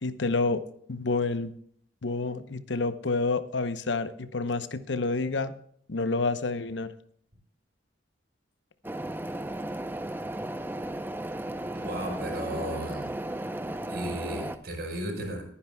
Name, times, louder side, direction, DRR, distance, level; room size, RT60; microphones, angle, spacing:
voice 1, 0.0-0.6 0.9-1.5 2.0-5.5 5.9-6.9, left 3 dB, 75° left, 12 dB, 0.9 m, -28 dB
sound 1, 8.8-14.6, right 1 dB, 10° right, 0.6 m, -35 dB
voice 2, 11.7-13.1 13.9-15.4, right 1 dB, 60° right, 2 dB, 4.9 m, -35 dB
21.5 x 10.0 x 2.3 m, 0.64 s
head